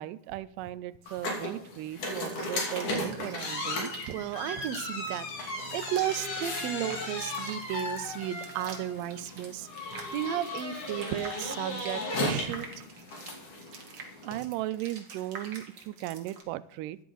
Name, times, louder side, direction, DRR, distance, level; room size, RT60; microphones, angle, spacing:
voice 1, 0.0-3.9 14.2-17.0, right 15 dB, 90° right, 16 dB, 2.2 m, -37 dB
sound 1, 1.1-14.4, left 2 dB, 70° left, 4.1 m, -36 dB
sound 2, 2.0-16.4, right 4 dB, 55° right, 3.0 m, -47 dB
voice 2, 4.1-12.7, right 12 dB, 75° right, 11 dB, 1.7 m, -34 dB
14.5 x 10.5 x 3.9 m, 0.72 s
omnidirectional pair, 3.7 m